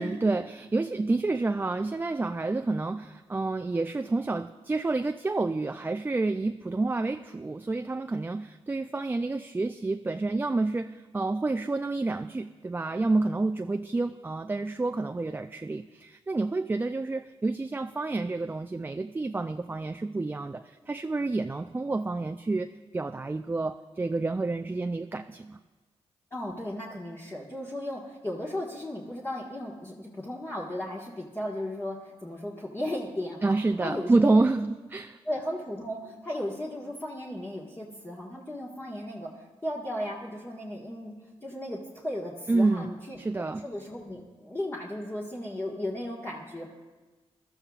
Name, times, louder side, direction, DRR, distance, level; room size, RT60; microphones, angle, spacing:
voice 1, 0.0-25.6 33.4-35.2 42.5-43.7, right 3 dB, 20° right, 7 dB, 0.4 m, -29 dB
voice 2, 26.3-34.6 35.2-41.1 41.4-43.2 43.6-46.7, left 1 dB, 20° left, -4 dB, 1.5 m, -35 dB
21.0 x 13.0 x 2.4 m, 1.3 s
cardioid pair, 75°, 11 cm